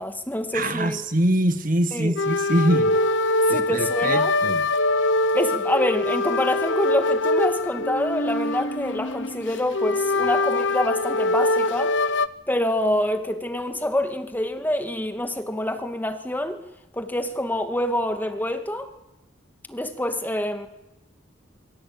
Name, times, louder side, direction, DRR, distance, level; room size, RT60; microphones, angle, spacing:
voice 1, 0.0-1.0 1.9-2.1 3.5-4.3 5.3-12.0 12.5-16.6 16.9-18.9 19.7-20.7, left 1 dB, 10° left, 6 dB, 2.2 m, -26 dB
voice 2, 0.5-3.0 3.5-4.7, right 1 dB, 45° right, 9 dB, 1.7 m, -23 dB
sound 1, 2.2-12.3, left 2 dB, 70° left, 1.0 m, -23 dB
27.0 x 23.5 x 8.9 m, 0.91 s
head